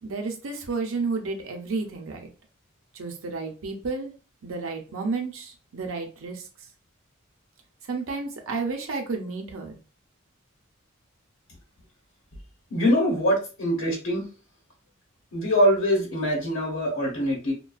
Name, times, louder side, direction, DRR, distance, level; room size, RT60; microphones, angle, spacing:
voice 1, 0.0-2.3 2.9-4.1 4.4-6.5 7.8-9.8, right 4 dB, 75° right, 2 dB, 0.6 m, -31 dB
voice 2, 12.7-14.3 15.3-17.5, equal, 75° left, -3 dB, 0.9 m, -23 dB
2.4 x 2.2 x 2.3 m, 0.34 s
head